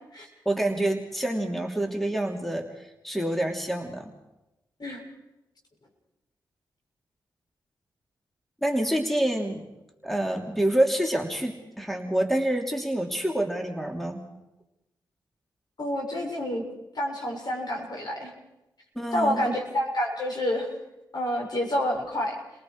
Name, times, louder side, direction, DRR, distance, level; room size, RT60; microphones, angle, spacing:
voice 1, 0.4-4.1 8.6-9.6 10.0-14.2 18.9-19.5, right 1 dB, ahead, 2 dB, 3.0 m, -27 dB
voice 2, 15.8-16.6 16.9-18.3 19.1-20.7 21.1-22.4, equal, 55° left, -1 dB, 7.1 m, -28 dB
30.0 x 19.0 x 4.8 m, 0.95 s
cardioid pair, 60°, 8 cm